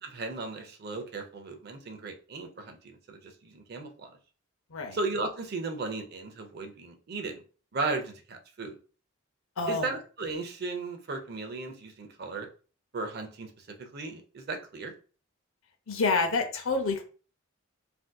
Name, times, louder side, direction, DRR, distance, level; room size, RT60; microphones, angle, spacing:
voice 1, 0.0-4.2 4.9-7.4 7.7-8.8 9.7-12.5 12.9-14.9, right 3 dB, 45° right, 5 dB, 0.5 m, -36 dB
voice 2, 9.6-9.9 15.9-17.0, left 3 dB, 70° left, 5 dB, 0.6 m, -28 dB
3.5 x 2.6 x 2.2 m, 0.38 s
head